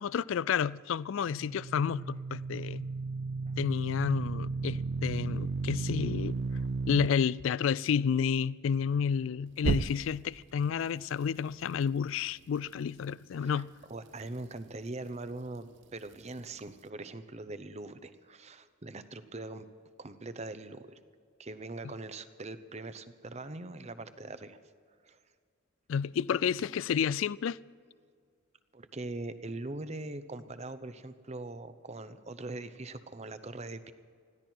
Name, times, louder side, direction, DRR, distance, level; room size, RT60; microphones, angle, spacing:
voice 1, 0.0-2.9 3.6-6.4 6.9-13.7 25.9-27.6, left 7 dB, 70° left, 0.3 m, -30 dB
sound 1, 1.3-7.1 9.6-10.4, right 4 dB, 60° right, 0.4 m, -34 dB
voice 2, 13.4-19.7 20.0-21.0 21.4-24.6 25.0-25.2 28.7-33.9, right 2 dB, 30° right, 0.8 m, -42 dB
20.5 x 15.0 x 4.5 m
head